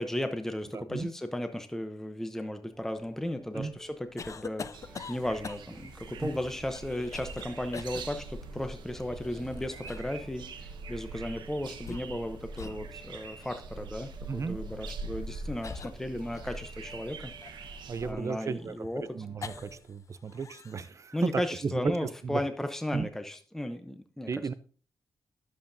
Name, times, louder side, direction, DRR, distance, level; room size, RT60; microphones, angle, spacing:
voice 1, 0.0-4.7 5.1-17.7 18.0-19.0 21.1-24.3, left 1 dB, 5° left, 7 dB, 0.7 m, -35 dB
voice 2, 0.7-1.1 3.5-3.7 6.2-6.4 14.3-14.6 17.9-21.9 22.2-22.4 22.9-23.1 24.3-24.5, right 5 dB, 40° right, 14 dB, 0.6 m, -34 dB
sound 1, 2.7-19.8, right 1 dB, 20° right, 1.2 m, -57 dB
sound 2, 4.2-5.9 6.7-7.4 7.7-8.0 9.2-10.2 11.6-12.3 12.5-12.8 13.4-13.6 14.7-14.9 15.6-16.8 17.4-19.9 20.2-20.9, left 5 dB, 45° left, 0.4 m, -44 dB
sound 3, 4.7-18.1, right 3 dB, 85° right, 0.9 m, -43 dB
11.0 x 7.3 x 2.7 m, 0.40 s
cardioid pair, 95°, 8 cm